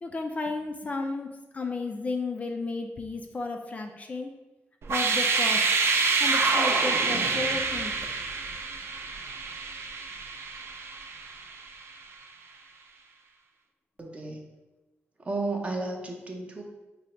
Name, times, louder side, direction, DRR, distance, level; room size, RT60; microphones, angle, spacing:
voice 1, 0.0-4.3 4.9-5.8 6.2-7.9, left 3 dB, 30° left, 4 dB, 0.3 m, -33 dB
sound 1, 4.8-11.7, right 4 dB, 65° right, 0.4 m, -27 dB
voice 2, 14.0-14.4 15.2-16.6, right 2 dB, 30° right, 1 dB, 0.6 m, -33 dB
4.8 x 2.0 x 4.3 m, 1.1 s
wide cardioid pair, 140°, 5 cm